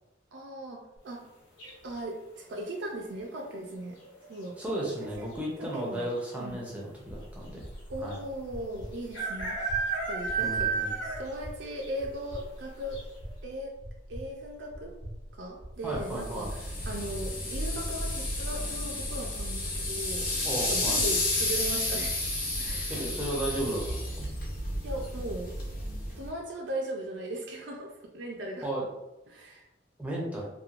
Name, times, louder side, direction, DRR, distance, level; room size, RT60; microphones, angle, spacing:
voice 1, 0.3-1.2 1.8-4.0 4.3-4.6 5.0-5.3 5.6-6.1 6.4-6.6 7.9-9.6 10.0-13.0 13.4-13.8 14.1-14.9 15.3-22.2 22.6-22.9 24.8-25.5 26.2-28.7 29.3-29.7, right 1 dB, 65° right, 0 dB, 0.4 m, -38 dB
sound 1, 1.6-2.1 3.9-4.3 4.5-4.6 4.8-5.4 6.1-6.2 6.5-6.6 8.1-8.2 9.1-11.4 11.8-11.9 12.4-12.5 12.9-13.0, right 5 dB, 70° left, 1.0 m, -31 dB
voice 2, 4.6-7.6 8.0-8.2 10.4-11.0 15.8-16.5 20.4-21.0 22.9-24.3 28.6-28.8 30.0-30.5, right 1 dB, 5° right, -4 dB, 0.5 m, -34 dB
sound 2, 7.1-18.5, equal, 35° left, 0.6 m, -44 dB
sound 3, 16.0-26.3, left 1 dB, 50° left, 1.0 m, -32 dB
2.9 x 2.1 x 2.4 m, 0.95 s
head